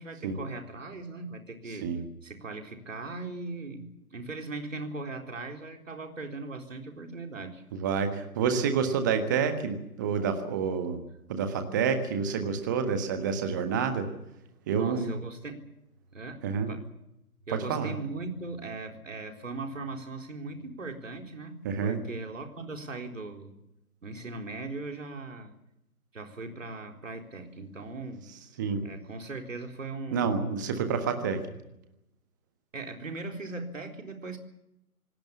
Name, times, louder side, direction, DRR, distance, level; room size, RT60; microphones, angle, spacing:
voice 1, 0.0-1.9 2.2-7.6 14.7-15.7 16.1-16.9 17.5-23.5 24.0-25.6 26.1-28.3 28.8-30.4 30.8-30.9 32.7-34.4, right 3 dB, 55° right, 4 dB, 4.0 m, -39 dB
voice 2, 7.7-11.0 11.3-14.1 14.7-15.1 16.4-16.7 17.5-17.9 21.6-22.0 28.6-28.8 30.1-31.4, right 6 dB, 10° right, 8 dB, 1.4 m, -28 dB
26.5 x 18.5 x 7.2 m, 0.84 s
figure-of-eight pair, 145°, 46 cm